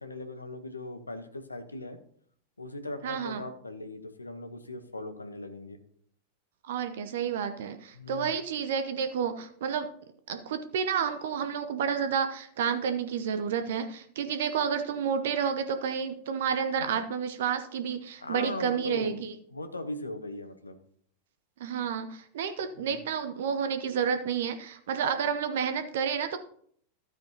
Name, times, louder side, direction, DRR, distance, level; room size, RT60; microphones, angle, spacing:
voice 1, 0.0-2.0 2.6-5.8 7.9-8.3 18.2-19.2 19.5-20.8 22.7-23.1, left 2 dB, 80° left, 9 dB, 1.0 m, -39 dB
voice 2, 3.0-3.4 6.7-9.9 10.3-19.3 21.6-26.4, right 7 dB, 60° right, 9 dB, 0.7 m, -30 dB
12.5 x 9.3 x 2.8 m, 0.62 s
figure-of-eight pair, 90°, 0 cm